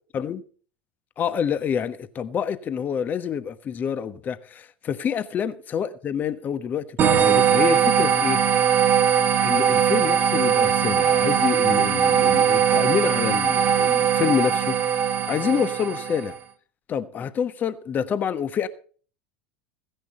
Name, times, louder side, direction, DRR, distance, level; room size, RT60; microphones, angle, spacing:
voice 1, 1.2-4.5 4.9-8.4 9.4-14.8 15.3-16.3 16.9-18.7, left 8 dB, 30° left, 1.2 m, -27 dB
sound 1, 7.0-16.4, right 8 dB, 35° right, 1.6 m, -20 dB
16.0 x 10.5 x 4.4 m
figure-of-eight pair, 75°, 6 cm